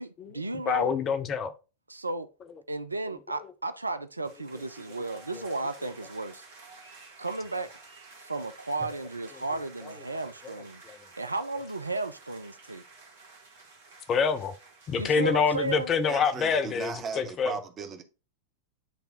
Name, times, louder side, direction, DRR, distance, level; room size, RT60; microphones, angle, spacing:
voice 1, 0.0-0.9 1.9-2.3 2.7-6.4 7.2-7.7 8.2-10.8 11.2-12.8 14.9-15.9, right 2 dB, 80° right, 0.4 m, -34 dB
voice 2, 0.6-1.5 3.1-3.2 5.3-5.5 10.4-10.5 10.9-11.0 14.1-14.5 14.9-17.5, left 6 dB, 30° left, 0.7 m, -26 dB
sound 1, 4.2-17.5, right 3 dB, 60° right, 1.8 m, -52 dB
voice 3, 16.1-18.0, right 5 dB, 30° right, 1.1 m, -37 dB
10.0 x 3.4 x 2.9 m
figure-of-eight pair, 90°, 0 cm